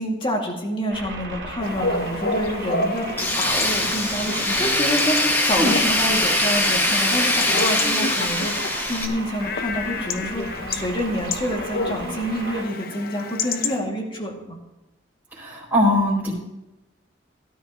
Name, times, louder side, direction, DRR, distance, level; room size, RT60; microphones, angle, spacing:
voice 1, 0.0-14.6, equal, 25° left, 0 dB, 2.2 m, -28 dB
sound 1, 0.9-12.6, right 3 dB, 65° right, 2.6 m, -36 dB
Chatter / Bark / Livestock farm animals working animals, 1.6-13.8, left 3 dB, 50° left, 0.9 m, -30 dB
Tools, 3.2-9.1, left 1 dB, 10° left, 1.2 m, -22 dB
voice 2, 15.3-16.3, left 1 dB, 10° right, -6 dB, 3.6 m, -21 dB
17.0 x 12.5 x 3.0 m, 0.99 s
head